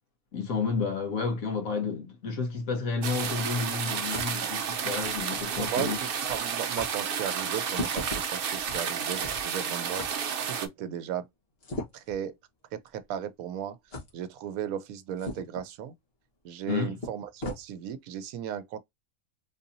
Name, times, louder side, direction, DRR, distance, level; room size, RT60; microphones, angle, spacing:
voice 1, 0.3-6.0 16.7-17.0, left 4 dB, 70° left, 1.6 m, -31 dB
sound 1, 2.5-6.0 6.3-6.4 6.7-6.9 7.6-9.5 10.0-10.1 11.6-12.2 12.9-13.0 13.9-14.1 15.2-15.6 16.6-16.7 17.0-17.6, left 1 dB, 45° left, 1.4 m, -39 dB
sound 2, 3.0-10.7, right 7 dB, 55° right, 0.6 m, -31 dB
voice 2, 5.6-10.1 10.5-11.3 12.1-12.3 12.7-13.8 14.1-15.9 16.4-18.8, right 9 dB, 80° right, 1.0 m, -35 dB
3.9 x 2.8 x 2.6 m
omnidirectional pair, 1.5 m